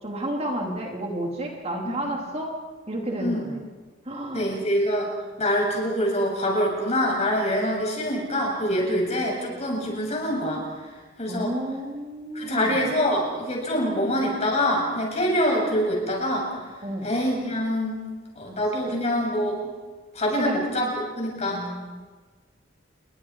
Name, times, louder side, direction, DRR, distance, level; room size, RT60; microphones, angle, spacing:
voice 1, 0.0-2.5 2.9-3.6 4.0-4.6 11.3-12.8 16.8-17.1 18.4-18.6 18.9-19.0 20.4-20.5 21.5-22.0, right 1 dB, 35° right, 0 dB, 3.2 m, -31 dB
voice 2, 4.3-5.1 5.4-10.7 11.2-11.5 12.3-16.5 17.0-18.0 18.4-19.6 20.1-21.6, equal, 35° left, -1 dB, 7.2 m, -25 dB
29.5 x 22.0 x 4.8 m, 1.4 s
head